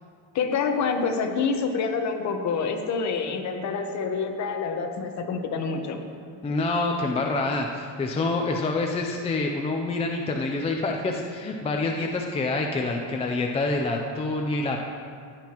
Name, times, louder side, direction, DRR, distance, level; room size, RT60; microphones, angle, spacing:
voice 1, 0.3-6.0, left 5 dB, 40° left, 4 dB, 1.1 m, -27 dB
voice 2, 6.4-14.8, left 3 dB, 15° left, 1 dB, 0.4 m, -27 dB
16.0 x 9.5 x 3.0 m, 2.2 s
cardioid pair, 150°, 43 cm